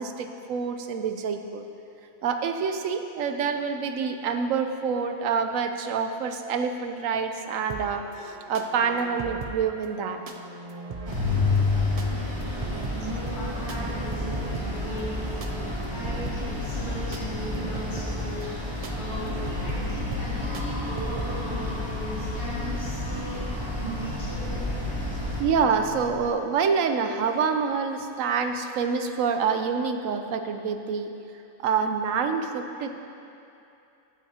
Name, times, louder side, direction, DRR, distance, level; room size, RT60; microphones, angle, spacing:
voice 1, 0.0-1.6 2.2-10.2 25.4-31.1 31.6-33.0, right 6 dB, 75° right, 6 dB, 1.1 m, -27 dB
sound 1, 7.7-21.4, right 4 dB, 55° right, 0.4 m, -40 dB
sound 2, 11.1-25.4, left 2 dB, 20° right, 1.6 m, -30 dB
voice 2, 12.6-24.7 24.9-25.1, equal, 50° left, -11 dB, 2.8 m, -37 dB
sound 3, 16.1-26.3, left 7 dB, 80° left, 1.1 m, -39 dB
14.5 x 10.0 x 2.9 m, 2.7 s
omnidirectional pair, 1.4 m